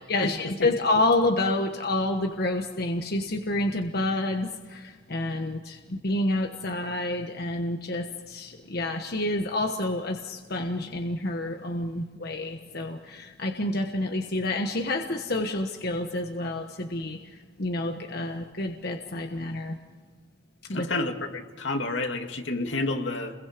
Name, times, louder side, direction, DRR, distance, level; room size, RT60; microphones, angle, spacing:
voice 1, 0.0-19.8 20.7-20.9, left 2 dB, 55° left, 4 dB, 1.3 m, -28 dB
voice 2, 20.7-23.3, left 2 dB, 80° left, 4 dB, 2.4 m, -30 dB
29.5 x 22.5 x 5.2 m, 1.4 s
head